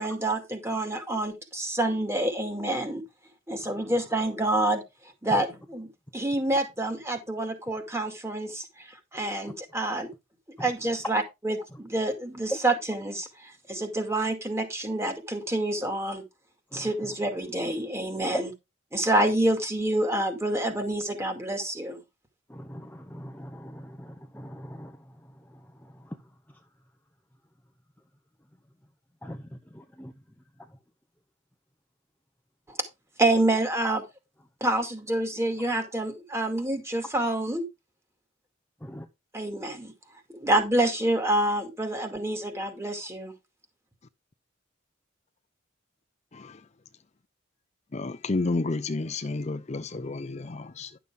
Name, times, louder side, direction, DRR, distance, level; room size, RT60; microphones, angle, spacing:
voice 1, 0.0-3.0 3.5-4.8 5.2-10.1 10.6-16.2 16.7-18.5 18.9-22.0 32.7-32.8 33.2-34.0 34.6-37.6 39.3-39.9 40.3-43.3, right 1 dB, 15° right, 2.2 m, -27 dB
voice 2, 22.5-25.1 25.5-26.2 29.2-30.1 38.8-39.1, equal, 10° left, 0.8 m, -42 dB
voice 3, 47.9-51.0, left 3 dB, 35° left, 0.5 m, -31 dB
11.5 x 6.9 x 3.6 m
head